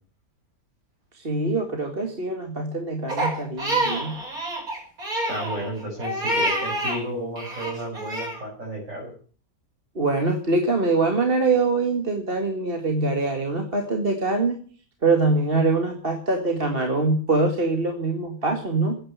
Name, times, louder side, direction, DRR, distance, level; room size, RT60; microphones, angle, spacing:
voice 1, 1.1-4.2 10.0-14.6 15.0-19.0, right 3 dB, 40° right, 3 dB, 2.3 m, -23 dB
Crying sobbing, 3.1-7.0 7.4-8.4, right 1 dB, 80° right, 6.5 m, -27 dB
voice 2, 5.3-9.1, right 1 dB, 60° right, -4 dB, 6.8 m, -32 dB
15.5 x 10.5 x 8.5 m, 0.43 s
omnidirectional pair, 1.5 m